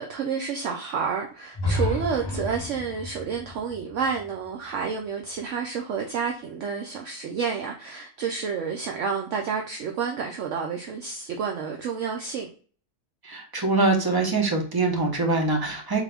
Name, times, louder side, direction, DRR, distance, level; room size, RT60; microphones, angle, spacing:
voice 1, 0.0-12.5, right 6 dB, 65° right, 0.8 m, -30 dB
sound 1, 1.5-5.4, left 1 dB, 40° left, 0.3 m, -32 dB
voice 2, 13.2-16.0, right 3 dB, 25° right, 0.5 m, -24 dB
3.7 x 2.7 x 3.4 m
omnidirectional pair, 1.6 m